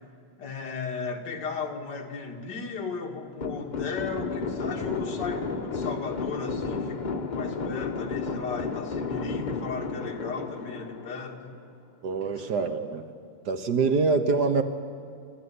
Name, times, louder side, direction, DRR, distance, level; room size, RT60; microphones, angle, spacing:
voice 1, 0.4-11.6 12.2-12.5, left 5 dB, 55° left, 2 dB, 2.4 m, -35 dB
sound 1, 3.4-11.7, left 4 dB, 80° left, 0.4 m, -32 dB
voice 2, 12.0-13.1 13.5-14.6, right 4 dB, 55° right, 8 dB, 1.5 m, -25 dB
27.5 x 12.5 x 9.8 m, 2.3 s
omnidirectional pair, 2.4 m